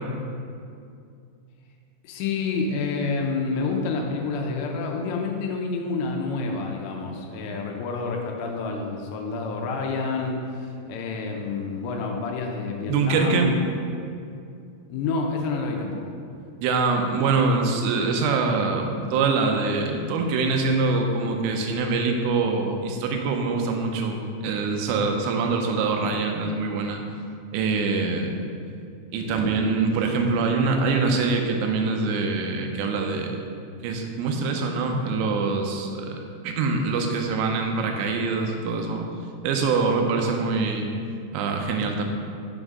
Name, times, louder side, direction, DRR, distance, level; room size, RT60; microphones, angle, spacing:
voice 1, 2.0-13.6 14.9-16.1, left 4 dB, 85° left, 1 dB, 2.9 m, -28 dB
voice 2, 12.9-13.5 16.6-27.0 27.5-28.4 29.1-33.4 33.8-39.1 39.4-40.9 41.3-42.0, right 4 dB, 85° right, 3 dB, 2.8 m, -24 dB
6.9 x 5.4 x 3.6 m, 2.5 s
omnidirectional pair, 5.0 m